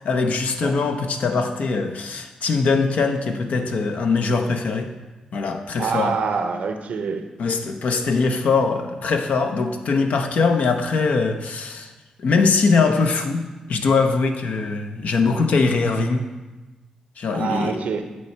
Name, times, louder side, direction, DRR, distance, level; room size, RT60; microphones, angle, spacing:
voice 1, 0.0-4.9 5.3-6.2 7.4-11.9 12.2-16.3 17.2-17.8, left 4 dB, 70° left, 5 dB, 0.6 m, -21 dB
voice 2, 5.8-7.2 17.3-18.0, right 5 dB, 70° right, 6 dB, 0.6 m, -25 dB
8.2 x 3.3 x 4.5 m, 1.1 s
supercardioid pair, 45°, 3 cm